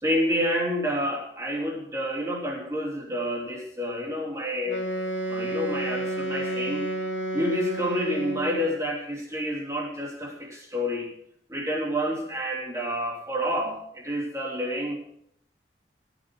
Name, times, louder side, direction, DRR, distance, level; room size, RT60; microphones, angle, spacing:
voice 1, 0.0-4.8 5.3-6.9 7.3-11.1 11.5-15.0, equal, 15° right, -1 dB, 3.2 m, -29 dB
Wind instrument woodwind instrument, 4.7-8.8, right 1 dB, 80° left, 2.2 m, -31 dB
14.5 x 9.7 x 6.1 m, 0.71 s
head